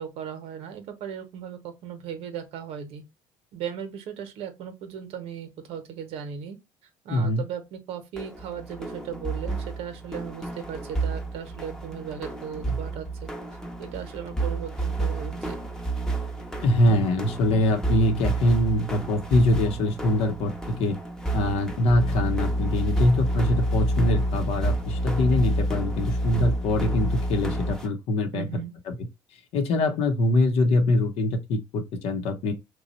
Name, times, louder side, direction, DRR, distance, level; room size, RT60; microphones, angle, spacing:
voice 1, 0.0-3.0 3.5-6.6 7.0-13.3 13.8-15.6 28.3-28.7, right 8 dB, 70° right, 0.8 m, -37 dB
voice 2, 7.1-7.4 12.7-12.8 16.6-21.0 21.3-28.5 28.9-29.0 29.5-32.5, left 1 dB, 70° left, 0.8 m, -23 dB
sound 1, 8.1-27.9, right 3 dB, 5° left, 0.7 m, -32 dB
sound 2, 21.9-27.7, equal, 35° left, 0.9 m, -27 dB
3.0 x 2.2 x 4.0 m
supercardioid pair, 70°, 11 cm